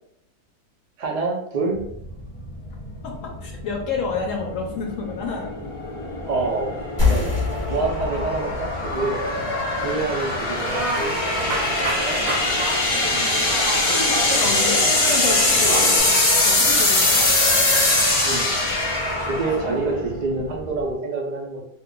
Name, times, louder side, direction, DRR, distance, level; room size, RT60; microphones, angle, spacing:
voice 1, 1.0-1.8 6.3-6.7 7.1-7.4 7.7-9.2 9.8-11.4 18.2-18.5 19.3-21.6, right 3 dB, 80° right, -1 dB, 0.3 m, -26 dB
sound 1, 1.8-20.9, left 2 dB, 50° left, 0.4 m, -22 dB
voice 2, 3.0-5.6 7.7-8.1 12.5-12.8 13.9-16.1 16.4-17.3 19.6-20.0, left 4 dB, 65° left, 0 dB, 0.9 m, -30 dB
sound 2, 7.0-12.1, left 4 dB, 20° left, 1.1 m, -28 dB
sound 3, 10.6-16.0, right 2 dB, 60° right, 0.9 m, -29 dB
2.5 x 2.2 x 3.7 m, 0.76 s
omnidirectional pair, 1.6 m